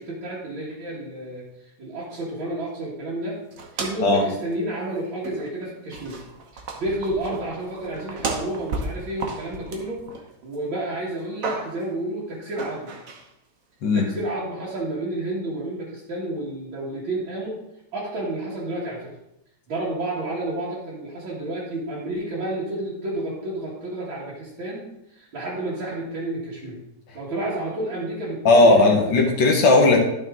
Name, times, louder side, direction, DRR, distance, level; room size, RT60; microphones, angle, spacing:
voice 1, 0.0-3.4 3.8-6.2 6.5-10.0 10.4-12.9 13.9-17.6 17.9-19.2 19.7-26.8 27.1-29.0, right 1 dB, 75° right, -8 dB, 2.5 m, -30 dB
sound 1, 3.5-4.2 4.5-4.6 5.2-5.6 5.9-10.6 10.9-11.9 12.6-13.3, right 3 dB, 50° right, 1.3 m, -34 dB
voice 2, 28.5-30.0, left 2 dB, 70° left, 1 dB, 1.9 m, -16 dB
11.5 x 6.1 x 3.7 m, 0.84 s
omnidirectional pair, 2.1 m